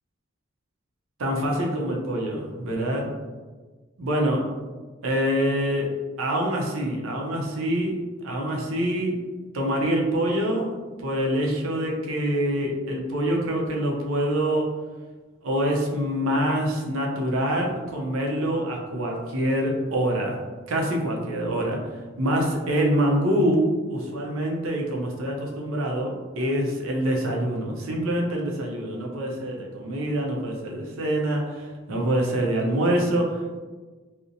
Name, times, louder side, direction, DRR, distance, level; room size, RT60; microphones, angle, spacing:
voice 1, 1.2-3.1 4.0-4.4 5.0-9.2 9.5-10.7 11.0-14.7 15.4-20.4 20.7-21.9 22.2-33.6, right 1 dB, 85° right, 0 dB, 0.5 m, -25 dB
2.7 x 2.0 x 2.5 m, 1.4 s
head